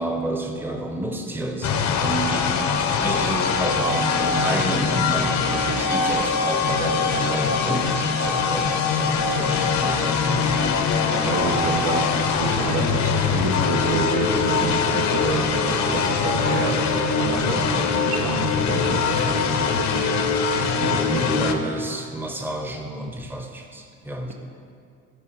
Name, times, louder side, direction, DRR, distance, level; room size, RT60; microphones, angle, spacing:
voice 1, 0.0-10.7 11.6-11.8 15.6-16.1 17.7-17.9 18.7-19.3 20.7-24.3, right 1 dB, 5° right, 3 dB, 0.8 m, -30 dB
sound 1, 1.6-21.5, left 5 dB, 65° left, 0.7 m, -22 dB
voice 2, 11.0-20.2 20.8-21.5, right 4 dB, 75° right, 2 dB, 1.0 m, -28 dB
10.5 x 4.4 x 4.6 m, 2.3 s
cardioid pair, 90°, 30 cm